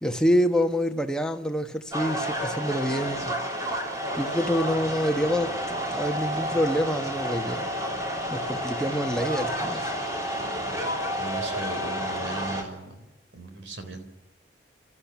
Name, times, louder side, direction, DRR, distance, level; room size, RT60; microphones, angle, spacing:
voice 1, 0.0-3.3 4.1-7.7 8.3-9.9, equal, 5° left, 1.2 m, -27 dB
sound 1, 1.9-12.6, equal, 20° right, 3.1 m, -30 dB
voice 2, 11.2-13.0 13.3-14.1, right 2 dB, 80° right, 3.7 m, -37 dB
29.0 x 13.5 x 9.4 m
head